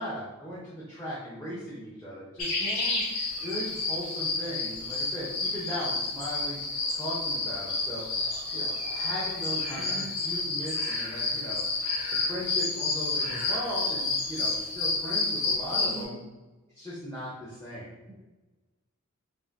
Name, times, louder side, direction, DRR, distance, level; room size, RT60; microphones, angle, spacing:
voice 1, 0.0-2.6 3.4-6.6 6.9-8.1 8.5-11.6 12.3-16.2 16.7-17.9, equal, 15° left, -9 dB, 0.7 m, -38 dB
sound 1, 2.4-16.0, left 3 dB, 75° left, 1.5 m, -30 dB
voice 2, 2.6-3.0 9.8-10.1 15.7-16.2, right 1 dB, 20° right, -5 dB, 0.5 m, -41 dB
5.5 x 2.5 x 2.6 m, 1.2 s
head